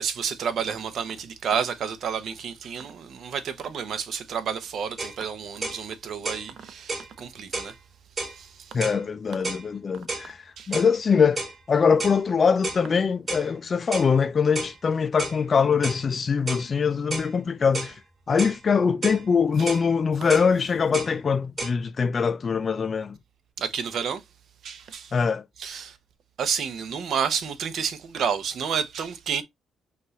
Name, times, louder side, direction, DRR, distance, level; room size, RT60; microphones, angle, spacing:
voice 1, 0.0-7.7 8.2-8.8 10.6-10.8 19.6-19.7 23.6-24.2 24.6-25.1 25.6-26.0 26.4-29.4, right 7 dB, 65° right, 0.8 m, -30 dB
sound 1, 5.0-5.2 5.6-5.8 6.2-6.5 6.9-7.1 7.5-7.7 8.2-8.4 8.8-9.0 9.4-9.7 10.1-10.3 10.7-10.9 11.4-11.6 12.0-12.2 12.6-12.8 13.3-13.5 13.9-14.1 14.5-14.8 15.2-15.4 15.8-16.0 16.5-16.7 17.1-17.3 17.7-18.0 18.4-18.6 19.0-19.2 19.7-19.9 20.3-20.5 20.9-21.1 21.6-21.7, right 2 dB, 35° right, 2.4 m, -32 dB
voice 2, 8.7-18.0 18.3-23.1 25.1-25.4, left 6 dB, 40° left, 0.4 m, -23 dB
5.3 x 2.5 x 3.1 m
cardioid pair, 90°, 0 cm